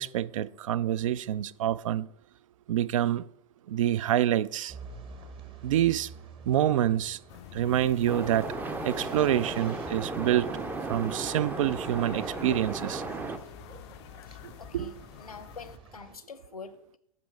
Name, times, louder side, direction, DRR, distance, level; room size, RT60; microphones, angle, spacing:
voice 1, 0.0-2.1 2.7-3.2 3.7-4.7 5.6-6.1 6.5-7.2 7.5-8.5 8.8-10.5 10.9-13.0 14.4-14.9, right 11 dB, 65° right, 0.4 m, -27 dB
sound 1, 4.7-16.2, right 4 dB, 30° right, 1.0 m, -49 dB
sound 2, 7.3-15.8, left 14 dB, 50° left, 0.4 m, -47 dB
sound 3, 8.1-13.4, right 3 dB, 10° right, 0.5 m, -35 dB
voice 2, 14.3-14.9 15.2-17.0, left 5 dB, 90° left, 0.8 m, -45 dB
7.5 x 5.3 x 4.5 m
hypercardioid pair, 100°, 18 cm